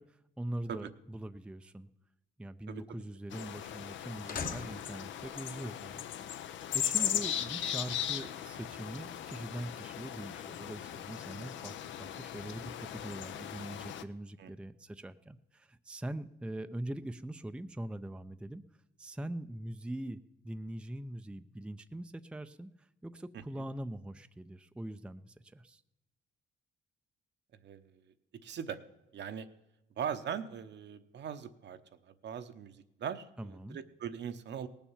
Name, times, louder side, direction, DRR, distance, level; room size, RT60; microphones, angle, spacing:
voice 1, 0.0-1.9 2.4-6.5 6.7-18.6 19.0-25.8 33.4-33.8, right 1 dB, 5° right, 10 dB, 0.5 m, -42 dB
voice 2, 2.7-3.0 14.4-14.5 23.3-23.6 27.6-28.1 28.4-28.8 29.1-29.5 30.0-31.8 32.1-34.7, right 8 dB, 60° right, 9 dB, 1.0 m, -40 dB
sound 1, 3.3-14.0, left 10 dB, 70° left, 0.7 m, -38 dB
sound 2, 3.4-3.5 4.3-5.2 6.7-7.5, left 4 dB, 45° left, 1.3 m, -43 dB
18.5 x 7.1 x 7.2 m, 0.96 s
cardioid pair, 90°, 20 cm